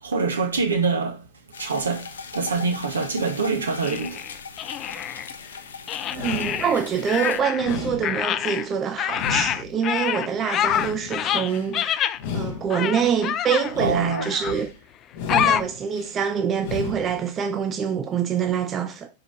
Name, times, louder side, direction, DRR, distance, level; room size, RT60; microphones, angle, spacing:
voice 1, 0.0-1.2 1.6-4.2 13.8-14.3, right 4 dB, 70° right, 1.5 m, -25 dB
sound 1, 1.5-7.4, left 6 dB, 70° left, 0.7 m, -39 dB
sound 2, 3.8-5.3 5.9-7.8 8.0-12.2 12.7-13.7 14.1-14.6 15.3-15.6, left 10 dB, 30° left, 0.4 m, -26 dB
sound 3, 5.3-5.7 6.1-7.2 7.6-8.7 9.1-10.2 10.6-11.7 12.1-13.2 13.6-14.7 15.1-16.1 16.6-17.2, left 5 dB, 50° left, 1.1 m, -34 dB
voice 2, 6.1-14.7 15.3-19.1, right 7 dB, 25° right, 0.6 m, -25 dB
5.1 x 4.7 x 4.9 m
figure-of-eight pair, 90°, 0 cm